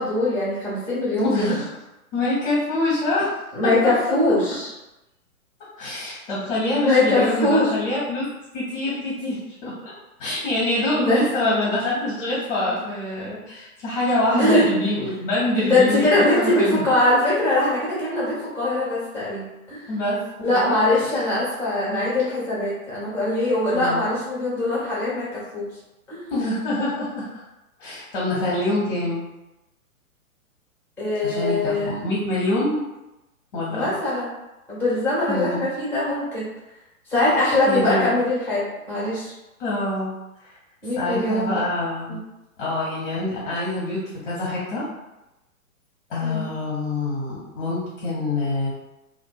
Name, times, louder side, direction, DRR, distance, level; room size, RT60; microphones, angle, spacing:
voice 1, 0.0-1.6 3.5-4.7 6.8-7.7 11.0-11.3 14.3-14.7 15.6-19.9 20.4-25.7 26.1-26.3 31.0-32.0 33.7-34.3 34.7-36.5 37.1-39.3 40.8-41.7 42.1-42.2 46.2-46.4, left 2 dB, 5° left, -9 dB, 0.9 m, -22 dB
voice 2, 1.2-1.7 2.1-3.3 5.8-8.3 8.5-9.9 10.2-16.8 19.9-20.7 21.0-21.2 23.7-24.0 26.3-27.4 27.8-29.2 31.2-32.9 33.5-33.9 35.3-35.7 37.7-38.1 39.6-40.1 40.4-40.6 41.0-42.2 42.6-44.9 46.1-48.7, left 2 dB, 40° left, -7 dB, 0.8 m, -25 dB
2.4 x 2.3 x 2.2 m, 0.96 s
figure-of-eight pair, 125°, 44 cm